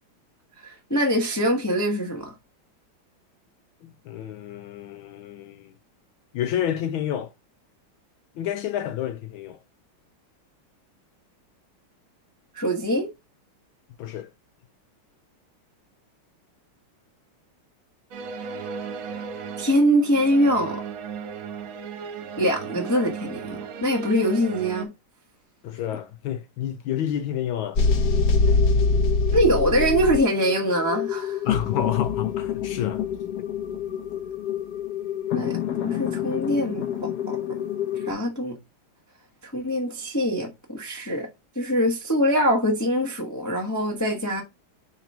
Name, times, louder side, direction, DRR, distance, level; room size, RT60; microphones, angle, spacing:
voice 1, 0.6-2.3 12.5-13.1 19.6-20.8 22.4-24.9 29.3-31.4 35.3-37.4 38.1-38.6 39.4-41.3 41.5-44.4, equal, 15° left, 0.6 m, -23 dB
voice 2, 3.8-5.7 6.3-7.3 8.4-9.6 14.0-14.3 25.6-27.8 28.5-28.6 31.4-33.0, left 10 dB, 80° left, 1.4 m, -29 dB
sound 1, 18.1-24.9, right 6 dB, 75° right, 1.7 m, -36 dB
sound 2, 27.7-38.1, left 5 dB, 60° left, 1.3 m, -25 dB
4.5 x 4.0 x 5.2 m
omnidirectional pair, 2.3 m